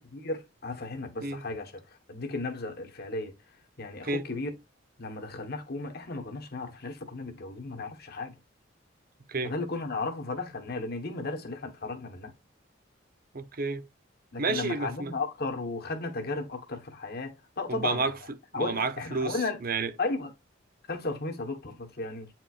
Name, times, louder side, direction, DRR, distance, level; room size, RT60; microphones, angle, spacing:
voice 1, 0.1-3.3 3.8-4.5 5.0-8.3 9.4-12.3 14.3-18.1 18.5-19.6 20.0-20.3 20.9-22.3, left 3 dB, 55° left, 1.2 m, -35 dB
voice 2, 13.3-13.9 14.4-15.1 17.7-19.9, right 3 dB, 50° right, 0.7 m, -31 dB
8.8 x 4.5 x 2.4 m
head